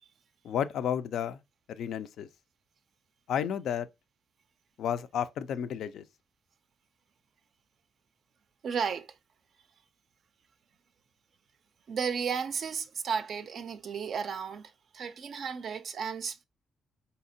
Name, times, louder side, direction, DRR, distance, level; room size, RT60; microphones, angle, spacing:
voice 1, 0.4-1.4 1.7-2.3 3.3-3.9 4.8-6.0, left 9 dB, 75° left, 0.3 m, -32 dB
voice 2, 8.6-9.1 11.9-16.4, right 6 dB, 55° right, 0.3 m, -34 dB
4.1 x 2.8 x 2.6 m
cardioid pair, 90°, 0 cm